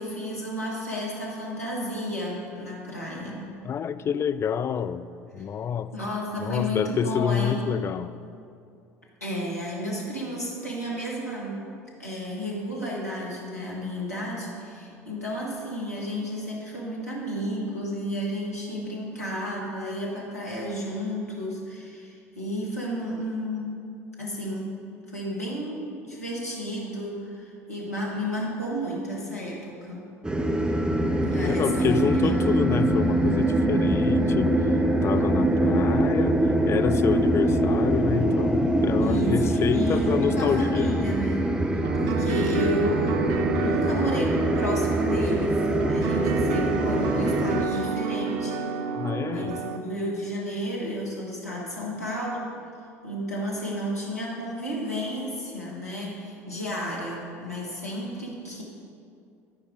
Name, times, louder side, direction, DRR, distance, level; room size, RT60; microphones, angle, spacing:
voice 1, 0.0-3.6 5.9-7.7 9.2-11.6 12.0-23.8 24.2-24.8 25.1-30.1 31.3-32.8 39.0-41.5 42.0-45.6 45.9-48.7 49.3-52.5 53.0-58.6, equal, 90° left, -4 dB, 1.6 m, -32 dB
voice 2, 3.6-5.9 6.4-8.2 31.1-34.6 35.0-40.9 48.9-49.6, left 7 dB, 35° left, 12 dB, 0.4 m, -28 dB
sound 1, 30.2-47.7, right 1 dB, 10° right, 0.8 m, -24 dB
sound 2, 41.8-49.8, right 5 dB, 55° right, 0.6 m, -30 dB
13.0 x 5.3 x 5.0 m, 2.5 s
figure-of-eight pair, 65°, 8 cm